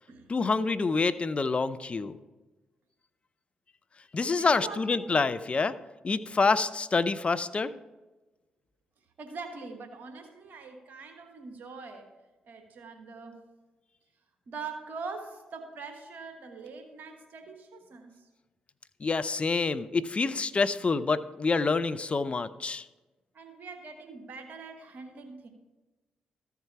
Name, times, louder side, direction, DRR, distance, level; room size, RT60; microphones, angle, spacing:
voice 1, 0.3-2.2 4.1-5.7 6.0-7.7 19.0-22.9, left 4 dB, 35° left, 14 dB, 0.5 m, -27 dB
voice 2, 4.3-4.8 9.2-12.1 12.4-13.4 14.5-18.3 23.3-25.5, right 4 dB, 65° right, 4 dB, 1.3 m, -43 dB
13.5 x 4.7 x 5.7 m, 1.2 s
supercardioid pair, 50°, 3 cm